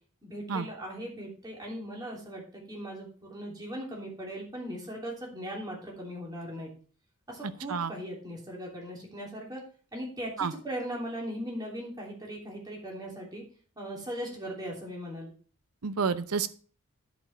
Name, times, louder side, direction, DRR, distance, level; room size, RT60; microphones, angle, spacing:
voice 1, 0.2-6.7 7.3-9.6 9.9-13.4 13.8-15.3, equal, 20° right, -3 dB, 3.1 m, -39 dB
voice 2, 15.8-16.5, right 5 dB, 90° right, 13 dB, 0.7 m, -29 dB
11.0 x 5.3 x 4.3 m, 0.42 s
head